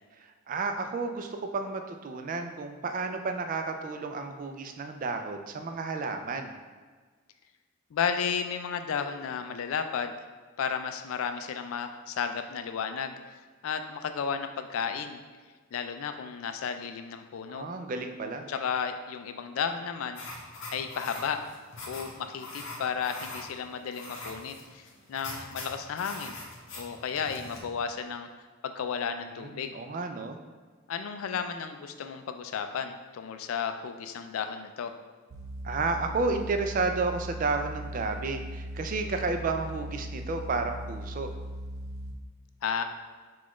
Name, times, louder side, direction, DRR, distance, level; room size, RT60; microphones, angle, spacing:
voice 1, 0.2-6.5 17.5-18.5 29.3-30.4 35.6-41.3, right 3 dB, 40° right, 6 dB, 0.3 m, -32 dB
voice 2, 7.9-10.1 10.6-13.2 13.6-15.2 15.7-17.7 18.5-20.4 20.7-21.4 21.9-26.4 26.7-29.8 30.9-35.0 42.6-42.8, left 6 dB, 80° left, 8 dB, 0.4 m, -33 dB
sound 1, 20.1-27.6, left 2 dB, 60° left, 0.8 m, -43 dB
sound 2, 35.3-42.1, equal, 75° right, 0.6 m, -39 dB
6.1 x 2.4 x 3.0 m, 1.4 s
head